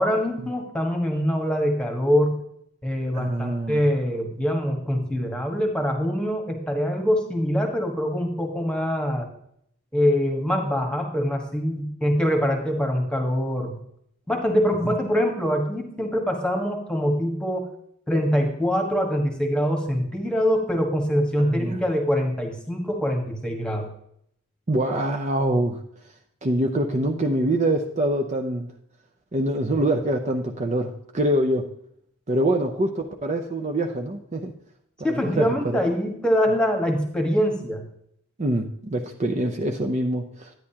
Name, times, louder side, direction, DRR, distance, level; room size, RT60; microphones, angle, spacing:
voice 1, 0.0-2.4 2.8-9.3 9.9-13.8 14.3-17.7 18.1-23.9 35.0-37.8, equal, 5° left, 3 dB, 1.4 m, -24 dB
voice 2, 3.1-3.8 21.4-21.8 24.7-25.8 26.4-28.7 29.3-31.7 32.3-34.5 35.1-35.8 38.4-40.5, right 1 dB, 35° right, 3 dB, 0.6 m, -25 dB
10.5 x 9.7 x 2.9 m, 0.70 s
head